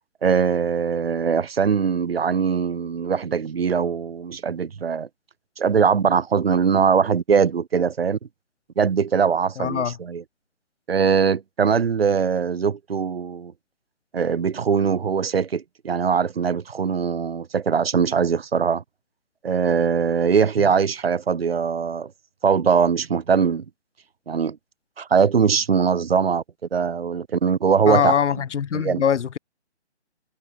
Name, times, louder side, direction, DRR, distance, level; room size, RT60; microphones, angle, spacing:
voice 1, 0.2-5.1 5.6-8.2 8.8-10.2 10.9-13.5 14.1-18.8 19.4-22.1 22.4-23.6 24.3-24.6 25.0-26.4 26.7-28.1 28.7-29.0, right 6 dB, 60° right, 1.2 m, -21 dB
voice 2, 9.6-9.9 27.9-29.4, left 8 dB, 90° left, 0.6 m, -22 dB
figure-of-eight pair, 160°, 34 cm